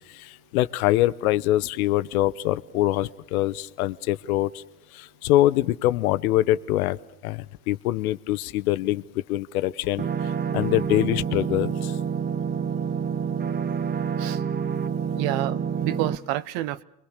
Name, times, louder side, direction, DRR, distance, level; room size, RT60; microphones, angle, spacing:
voice 1, 0.1-4.6 4.9-7.0 7.2-9.0 9.3-10.0 10.5-11.9, left 15 dB, 65° left, 1.1 m, -24 dB
sound 1, 10.0-16.2, right 7 dB, 20° right, 1.0 m, -28 dB
voice 2, 15.2-16.8, right 15 dB, 50° right, 1.0 m, -29 dB
29.0 x 23.5 x 6.6 m
hypercardioid pair, 90°, 46 cm